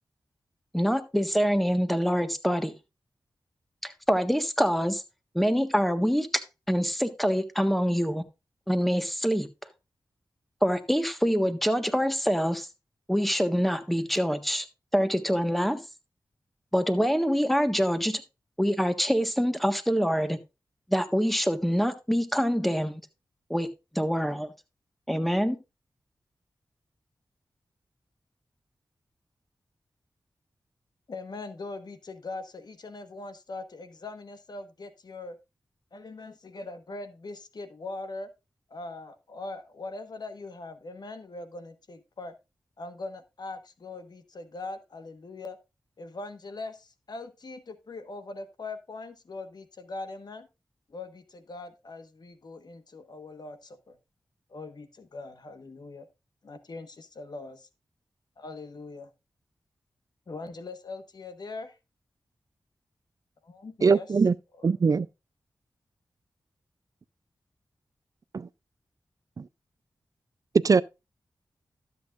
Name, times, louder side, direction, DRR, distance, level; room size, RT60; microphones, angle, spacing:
voice 1, 0.7-2.7 3.8-5.0 5.3-6.3 6.7-8.2 8.7-9.5 10.6-12.7 13.1-14.7 14.9-15.8 16.7-18.2 18.6-20.4 20.9-23.0 23.5-23.7 23.9-24.5 25.1-25.6, equal, ahead, 1.4 m, -25 dB
voice 2, 31.1-35.4 35.9-38.3 38.7-42.3 42.8-45.6 46.0-50.5 50.9-54.0 54.5-56.1 56.4-57.7 58.4-59.1 60.3-61.8 63.4-64.1 64.6-64.7, left 3 dB, 65° left, 1.3 m, -41 dB
voice 3, 63.8-64.3 64.6-65.1 68.3-68.5 69.4-69.5 70.6-70.8, right 5 dB, 50° right, 0.4 m, -21 dB
12.5 x 8.2 x 2.5 m
cardioid pair, 50°, 8 cm